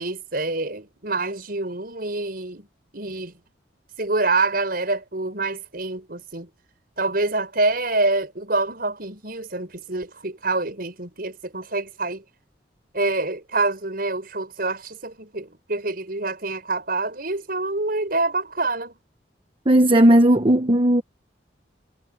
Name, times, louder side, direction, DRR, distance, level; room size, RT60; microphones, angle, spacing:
voice 1, 0.0-2.7 2.9-3.3 4.0-6.5 7.0-12.2 12.9-19.0, right 2 dB, 55° right, 6.5 m, -26 dB
voice 2, 19.7-21.0, right 1 dB, 30° right, 1.0 m, -15 dB
head